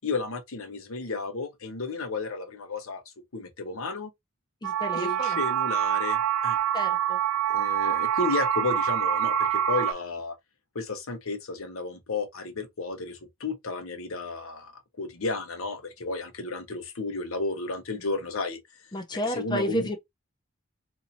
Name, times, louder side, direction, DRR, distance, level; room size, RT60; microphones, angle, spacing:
voice 1, 0.0-3.0 3.3-4.1 4.9-6.6 7.5-10.4 10.7-14.7 15.0-18.6 19.1-20.0, left 3 dB, 85° left, 1.0 m, -33 dB
voice 2, 4.6-5.4 6.7-7.2 18.9-20.0, equal, 20° left, 0.6 m, -31 dB
sound 1, 4.6-9.9, right 10 dB, 80° right, 0.5 m, -26 dB
2.8 x 2.6 x 4.1 m
head